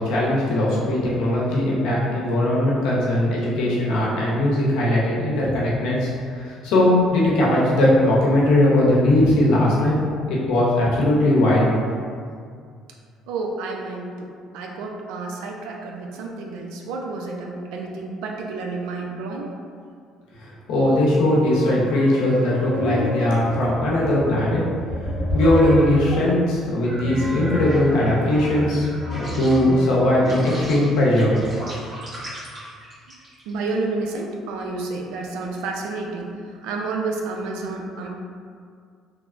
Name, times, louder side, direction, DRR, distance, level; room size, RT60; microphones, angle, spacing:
voice 1, 0.0-10.0 10.3-11.7 20.7-24.6 25.3-28.9 29.1-31.4, left 1 dB, 85° left, -5 dB, 0.7 m, -19 dB
voice 2, 13.3-14.3 14.5-19.6 33.5-36.3 36.6-38.1, right 3 dB, 85° right, 0 dB, 0.4 m, -30 dB
sound 1, 21.3-26.3 26.8-33.5, left 1 dB, 50° right, 1.2 m, -31 dB
3.2 x 2.1 x 2.4 m, 2.2 s
cardioid pair, 115°, 0 cm